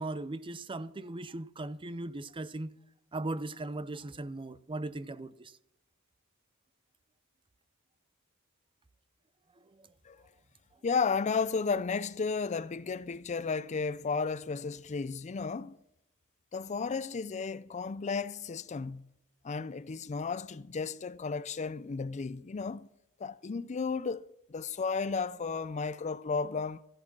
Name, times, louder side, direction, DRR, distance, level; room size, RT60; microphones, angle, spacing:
voice 1, 0.0-2.7 3.1-5.5, right 2 dB, 25° right, 0.6 m, -38 dB
voice 2, 10.8-15.8 16.5-19.1 19.4-22.9 23.2-26.8, left 5 dB, 35° left, 0.4 m, -33 dB
14.0 x 11.0 x 6.0 m
head